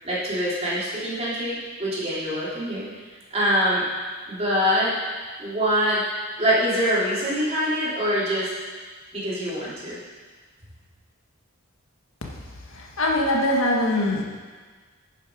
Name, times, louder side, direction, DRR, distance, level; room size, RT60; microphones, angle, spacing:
voice 1, 0.0-2.9 3.3-3.9 4.3-5.0 5.4-6.0 6.4-8.5 9.1-10.0, equal, 30° right, -9 dB, 3.7 m, -24 dB
voice 2, 12.7-14.2, left 1 dB, 65° left, 0 dB, 1.7 m, -22 dB
11.5 x 9.8 x 4.9 m, 1.5 s
head